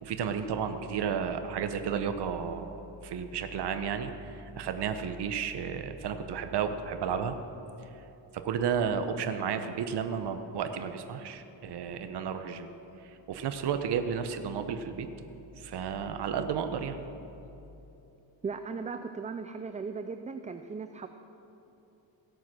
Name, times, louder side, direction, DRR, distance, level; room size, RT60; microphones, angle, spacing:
voice 1, 0.0-2.7 3.0-7.3 8.3-12.7 13.0-15.1 15.6-17.0, right 7 dB, 60° right, 8 dB, 1.0 m, -32 dB
voice 2, 18.4-21.1, right 5 dB, 15° right, 8 dB, 0.4 m, -37 dB
16.5 x 9.2 x 6.2 m, 2.9 s
cardioid pair, 115°, 45 cm